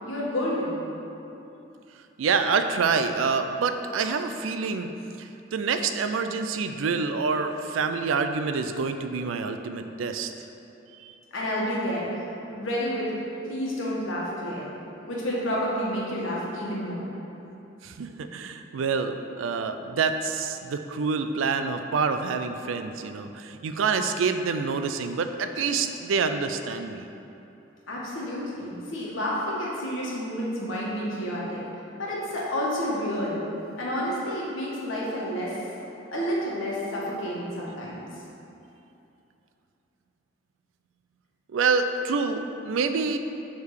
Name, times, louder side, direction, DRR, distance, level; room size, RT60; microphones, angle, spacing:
voice 1, 0.0-0.8 11.3-12.2 12.5-13.1 13.4-14.7 15.1-17.0 25.5-25.7 27.9-31.6 32.0-33.4 33.8-35.7 36.1-38.0, equal, 85° left, -5 dB, 1.4 m, -30 dB
voice 2, 2.2-4.9 5.2-10.3 11.0-11.1 17.8-27.1 41.5-43.2, right 5 dB, 85° right, 8 dB, 0.4 m, -27 dB
6.5 x 3.5 x 4.7 m, 2.8 s
head